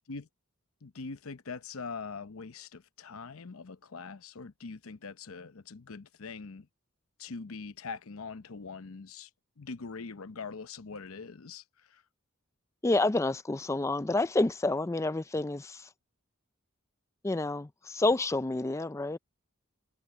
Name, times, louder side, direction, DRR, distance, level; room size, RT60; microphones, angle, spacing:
voice 1, 0.8-6.7 7.2-9.3 9.6-12.0, left 4 dB, 80° left, 0.8 m, -43 dB
voice 2, 12.8-15.9 17.2-19.2, left 2 dB, 15° left, 0.4 m, -29 dB
head